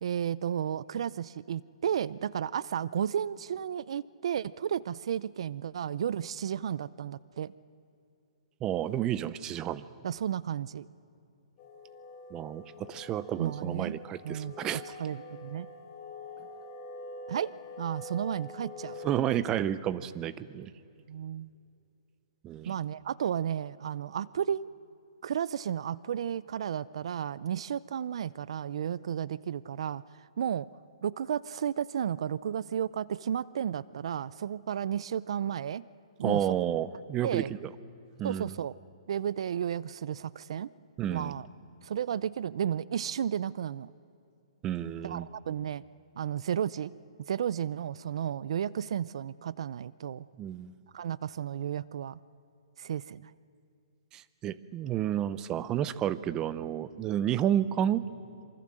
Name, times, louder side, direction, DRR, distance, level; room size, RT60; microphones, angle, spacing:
voice 1, 0.0-7.5 10.0-10.9 13.4-14.0 14.2-14.5 15.0-15.7 17.3-17.5 17.8-19.0 21.1-21.5 22.7-24.7 25.2-30.0 30.4-30.7 31.0-35.8 36.2-36.6 37.2-37.5 38.2-38.7 39.1-40.7 41.1-41.5 41.8-43.9 45.0-45.8 46.2-46.9 47.3-50.2 50.9-52.2 52.8-53.3, right 9 dB, 65° right, 20 dB, 0.5 m, -33 dB
voice 2, 8.6-9.9 12.3-14.8 19.0-20.7 22.4-22.7 36.2-37.7 38.2-38.6 41.0-41.4 44.6-45.3 50.4-50.7 54.1-58.1, right 10 dB, 20° right, 16 dB, 0.7 m, -31 dB
sound 1, 11.6-19.1, left 2 dB, 35° left, 4.4 m, -45 dB
26.5 x 24.5 x 7.7 m, 2.6 s
hypercardioid pair, 155°, 3 cm